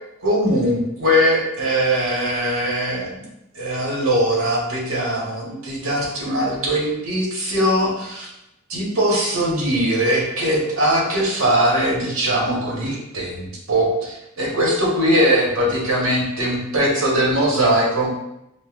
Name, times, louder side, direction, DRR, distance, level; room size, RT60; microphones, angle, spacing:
voice 1, 0.2-3.2 3.5-8.3 8.7-18.1, equal, 90° right, -3 dB, 1.1 m, -20 dB
5.4 x 2.1 x 2.4 m, 0.85 s
head